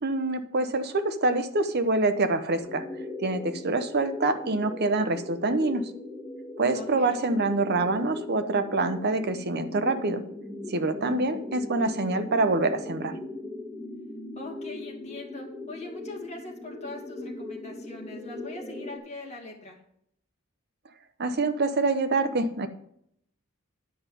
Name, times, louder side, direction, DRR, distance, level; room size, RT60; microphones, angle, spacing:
voice 1, 0.0-2.8 3.2-5.9 6.6-10.2 10.7-13.1 21.2-22.7, right 2 dB, 50° right, 9 dB, 0.9 m, -26 dB
sound 1, 2.6-19.0, left 2 dB, ahead, 1.8 m, -39 dB
voice 2, 6.7-7.2 14.4-19.8, left 2 dB, 30° left, -1 dB, 2.3 m, -42 dB
10.5 x 5.3 x 7.6 m, 0.71 s
head